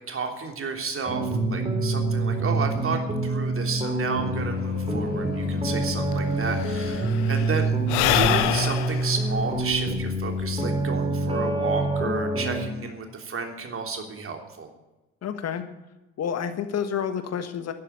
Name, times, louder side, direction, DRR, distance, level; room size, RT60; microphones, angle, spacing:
voice 1, 0.1-7.7 8.1-14.7, right 5 dB, 35° right, 3 dB, 3.3 m, -32 dB
sound 1, 1.1-12.6, right 2 dB, 15° right, 3.0 m, -26 dB
sound 2, 4.1-7.4, left 1 dB, 25° left, 6.6 m, -39 dB
Sigh / Breathing, 5.8-5.9 6.1-10.8, left 13 dB, 65° left, 1.0 m, -27 dB
voice 2, 15.2-15.6 16.2-17.7, left 8 dB, 45° left, 9 dB, 1.5 m, -29 dB
12.0 x 11.5 x 8.5 m, 1.0 s
figure-of-eight pair, 55°, 37 cm